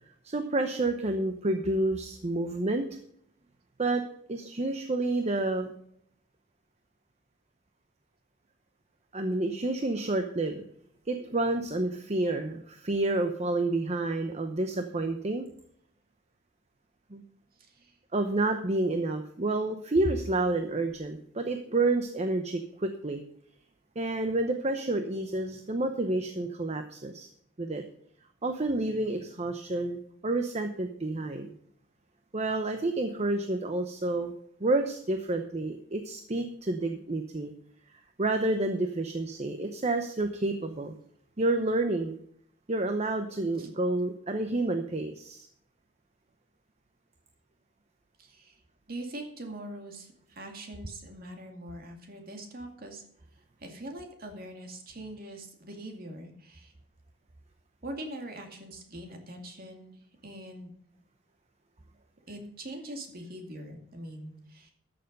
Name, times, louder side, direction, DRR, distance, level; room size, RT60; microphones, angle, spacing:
voice 1, 0.2-2.9 3.8-5.7 9.1-10.7 11.1-15.5 17.1-17.2 18.1-23.2 24.0-27.3 27.6-27.8 28.4-31.5 32.3-34.3 34.6-37.5 38.2-41.0 41.4-42.2 42.7-45.5, right 2 dB, 35° right, 6 dB, 0.8 m, -29 dB
voice 2, 17.6-18.0 43.6-43.7 48.2-48.6 48.9-53.0 53.3-56.7 57.8-60.7 62.3-64.7, right 1 dB, 50° right, 3 dB, 2.3 m, -43 dB
13.0 x 6.9 x 5.3 m, 0.68 s
head